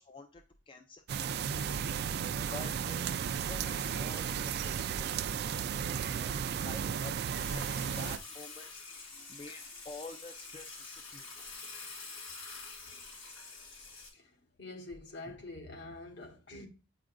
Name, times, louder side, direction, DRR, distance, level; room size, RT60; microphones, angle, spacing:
voice 1, 0.0-1.7 2.5-3.2 3.5-5.4 6.1-8.8 9.3-11.3 15.3-15.4, left 3 dB, 25° left, 0.4 m, -49 dB
sound 1, 1.1-8.2, right 7 dB, 55° right, 0.3 m, -34 dB
Water / Water tap faucet / Sink (filling or washing), 7.3-14.1, left 3 dB, 85° left, 3.1 m, -47 dB
voice 2, 14.1-16.7, left 2 dB, 60° left, 1.3 m, -46 dB
8.0 x 4.9 x 2.6 m
head